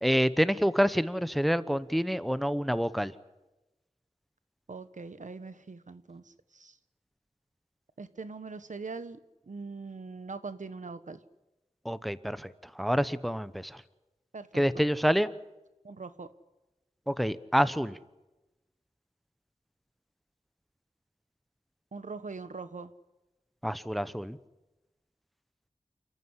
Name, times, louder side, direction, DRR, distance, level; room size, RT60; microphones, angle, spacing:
voice 1, 0.0-3.1 11.8-12.5 12.7-13.8 14.5-15.3 17.1-18.0 23.6-24.4, equal, ahead, 15 dB, 0.9 m, -27 dB
voice 2, 4.7-6.8 8.0-9.2 9.5-11.2 14.3-14.9 15.8-16.3 21.9-22.9, right 4 dB, 85° right, 13 dB, 1.2 m, -42 dB
29.0 x 14.5 x 9.9 m, 1.0 s
wide cardioid pair, 65°, 13 cm